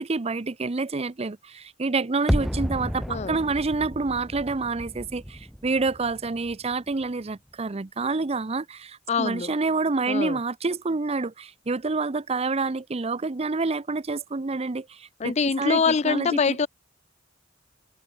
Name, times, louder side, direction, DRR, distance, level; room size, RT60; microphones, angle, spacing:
voice 1, 0.0-16.7, right 3 dB, 30° right, 0.6 m, -28 dB
sound 1, 2.3-7.2 7.5-7.6, equal, ahead, 0.9 m, -32 dB
voice 2, 3.1-3.4 9.1-9.5 10.1-10.4 15.2-16.7, left 5 dB, 35° left, 0.4 m, -24 dB
head